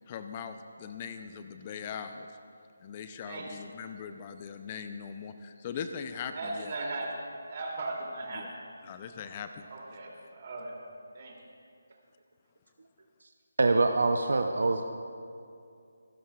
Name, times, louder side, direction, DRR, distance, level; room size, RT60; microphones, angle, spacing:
voice 1, 0.1-2.3 2.8-6.7 8.3-8.5 8.8-9.9, left 6 dB, 30° left, 8 dB, 0.6 m, -40 dB
voice 2, 6.3-7.1 7.5-8.6 9.7-10.7 11.1-11.4, right 2 dB, 45° right, -1 dB, 2.9 m, -37 dB
voice 3, 13.6-14.8, right 3 dB, 70° right, 6 dB, 0.7 m, -24 dB
26.0 x 12.5 x 2.4 m, 2.5 s
figure-of-eight pair, 155°, 0 cm